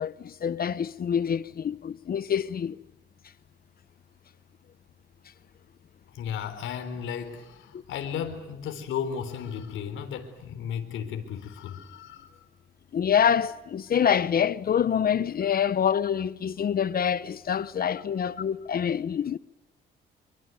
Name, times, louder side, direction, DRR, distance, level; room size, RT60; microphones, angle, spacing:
voice 1, 0.0-2.8 7.7-7.8 12.9-19.4, left 8 dB, 50° left, 1.0 m, -26 dB
voice 2, 6.1-12.3 17.6-17.7, left 8 dB, 80° left, 4.0 m, -34 dB
25.0 x 23.5 x 9.3 m
cardioid pair, 90°, 20 cm